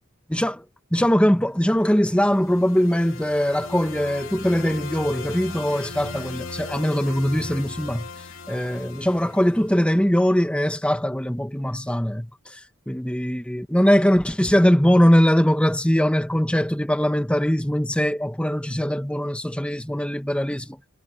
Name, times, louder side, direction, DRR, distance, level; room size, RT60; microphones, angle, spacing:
voice 1, 0.3-0.7 0.9-8.1 8.5-12.6 12.9-20.8, equal, 5° left, 1.4 m, -21 dB
sound 1, 1.9-10.1, left 3 dB, 75° left, 3.4 m, -38 dB
head